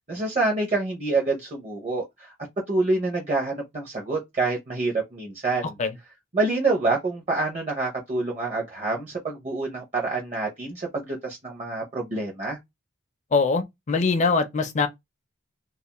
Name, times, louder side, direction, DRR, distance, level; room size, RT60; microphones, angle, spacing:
voice 1, 0.1-2.3 2.7-5.7 6.3-12.6, right 3 dB, 35° right, 0.6 m, -27 dB
voice 2, 13.3-14.9, left 4 dB, 35° left, 0.4 m, -22 dB
2.4 x 2.3 x 2.9 m
head